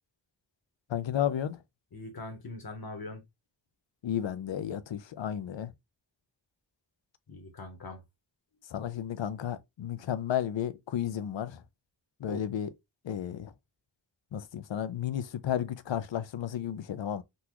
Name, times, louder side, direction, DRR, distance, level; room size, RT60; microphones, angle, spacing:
voice 1, 0.9-1.6 4.0-5.7 8.7-11.6 12.2-12.7 13.0-13.5 14.3-17.2, left 10 dB, 80° left, 0.5 m, -33 dB
voice 2, 1.9-3.2 7.3-8.0 12.3-12.4, left 2 dB, 55° left, 1.0 m, -41 dB
3.8 x 2.3 x 2.9 m
wide cardioid pair, 75°, 44 cm